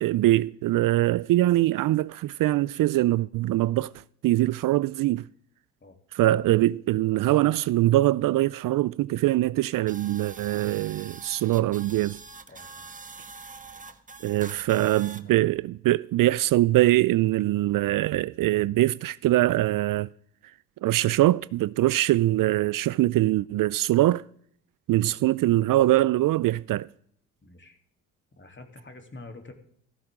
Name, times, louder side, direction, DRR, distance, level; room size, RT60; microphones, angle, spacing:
voice 1, 0.0-5.3 6.1-12.2 14.2-20.1 20.8-24.2 24.9-26.9, right 16 dB, 55° right, 0.5 m, -23 dB
sound 1, 9.9-15.2, right 4 dB, 20° right, 1.2 m, -44 dB
voice 2, 12.5-13.0 14.4-15.6 25.0-25.5 27.4-27.8 28.4-29.5, left 2 dB, 30° left, 3.2 m, -48 dB
16.0 x 13.5 x 3.7 m
hypercardioid pair, 55°, 39 cm